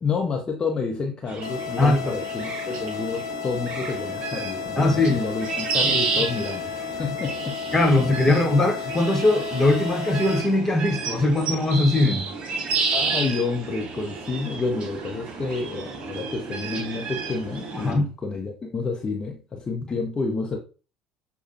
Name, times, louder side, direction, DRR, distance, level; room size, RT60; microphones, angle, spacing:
voice 1, 0.0-7.6 8.3-8.4 12.9-20.6, left 4 dB, 30° left, 0.7 m, -29 dB
sound 1, 1.3-17.9, right 4 dB, 50° right, 0.8 m, -31 dB
sound 2, 1.4-10.4, left 9 dB, 90° left, 0.4 m, -34 dB
voice 2, 1.8-2.1 4.8-5.2 5.8-5.9 7.7-12.3 17.8-18.1, left 2 dB, 15° left, 1.2 m, -20 dB
6.4 x 2.3 x 2.7 m
hypercardioid pair, 65°, 2 cm